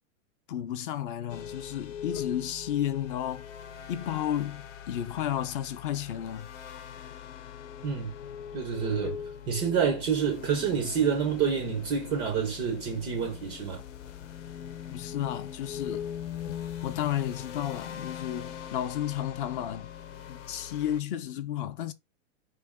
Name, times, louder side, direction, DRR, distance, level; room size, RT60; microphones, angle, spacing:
voice 1, 0.5-3.5 3.9-6.5 14.9-16.1 16.8-19.9 20.3-21.9, left 11 dB, 45° left, 0.5 m, -32 dB
sound 1, 1.3-21.0, left 9 dB, 65° left, 0.8 m, -41 dB
voice 2, 8.5-13.8, right 7 dB, 15° right, 0.3 m, -28 dB
4.5 x 3.1 x 3.5 m
supercardioid pair, 155°, 38 cm